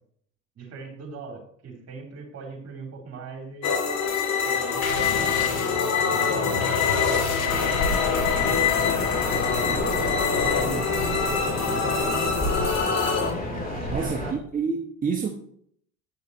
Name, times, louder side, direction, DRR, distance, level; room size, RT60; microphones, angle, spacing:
voice 1, 0.6-3.8 4.4-8.8 9.3-10.1 10.5-12.7 13.7-14.3, right 4 dB, 35° right, 3.3 m, -39 dB
sound 1, 3.6-13.3, left 6 dB, 40° left, 2.4 m, -25 dB
sound 2, 4.8-14.0, left 6 dB, 85° left, 1.0 m, -33 dB
sound 3, 7.5-14.3, left 1 dB, 20° left, 3.5 m, -31 dB
voice 2, 10.4-10.9 13.9-15.3, right 5 dB, 20° right, 1.0 m, -29 dB
11.0 x 8.9 x 3.1 m
figure-of-eight pair, 60°, 41 cm